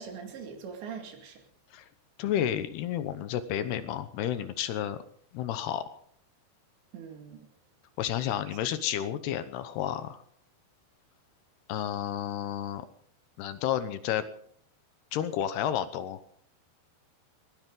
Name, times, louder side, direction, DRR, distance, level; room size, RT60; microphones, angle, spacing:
voice 1, 0.0-1.4 6.9-7.5 8.5-8.6, right 6 dB, 90° right, 3 dB, 4.7 m, -42 dB
voice 2, 2.2-5.0 5.3-5.8 8.0-10.2 11.7-12.9 13.4-14.3 15.1-16.2, left 10 dB, 75° left, 11 dB, 3.0 m, -31 dB
20.5 x 17.0 x 3.9 m, 0.62 s
omnidirectional pair, 4.9 m